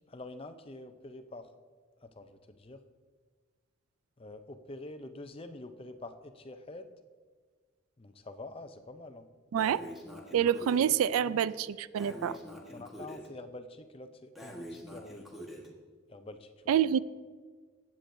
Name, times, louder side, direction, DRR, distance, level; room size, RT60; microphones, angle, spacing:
voice 1, 0.1-1.5 2.0-2.8 4.2-7.0 8.0-9.3 11.1-11.5 12.3-12.4 12.7-15.3 16.1-16.8, left 2 dB, 25° left, 9 dB, 0.5 m, -46 dB
Breathing, 9.6-10.9 11.9-13.3 14.3-15.7, equal, ahead, 1.2 m, -45 dB
voice 2, 10.3-12.4 16.7-17.0, right 9 dB, 90° right, 17 dB, 0.3 m, -27 dB
15.5 x 8.4 x 2.6 m, 1.5 s
head